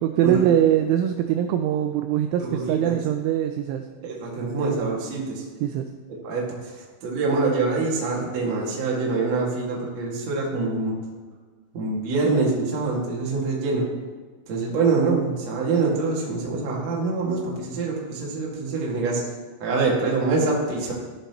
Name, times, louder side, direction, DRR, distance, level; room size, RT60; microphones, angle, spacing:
voice 1, 0.0-3.9 5.6-5.9, right 10 dB, 90° right, 7 dB, 2.7 m, -22 dB
voice 2, 2.4-3.0 4.0-5.4 6.2-11.0 11.7-13.8 14.5-19.2 19.6-20.9, right 3 dB, 60° right, -3 dB, 1.8 m, -25 dB
14.0 x 7.0 x 2.9 m, 1.4 s
omnidirectional pair, 5.9 m